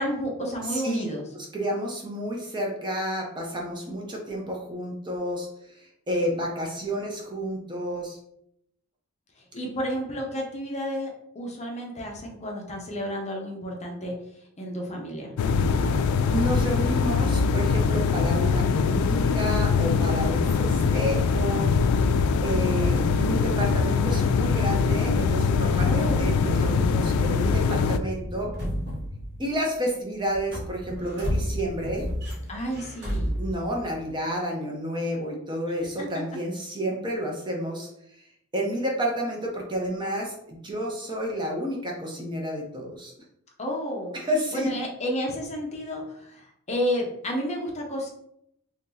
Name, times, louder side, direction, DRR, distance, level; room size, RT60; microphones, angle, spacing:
voice 1, 0.0-1.2 9.5-14.2 14.6-15.3 25.8-26.3 32.5-33.4 36.0-36.1 43.6-44.2 44.5-48.1, equal, 30° left, 0 dB, 0.7 m, -31 dB
voice 2, 0.7-1.0 1.3-8.2 15.7-16.0 16.3-21.7 22.4-28.5 29.4-32.1 33.4-37.9 38.5-43.1 44.1-44.7, equal, 20° right, -1 dB, 0.6 m, -30 dB
sound 1, 15.4-28.0, left 5 dB, 80° left, 0.3 m, -23 dB
sound 2, 29.6-29.9 30.2-34.2, equal, 55° right, 1.3 m, -35 dB
2.8 x 2.6 x 3.8 m, 0.75 s
head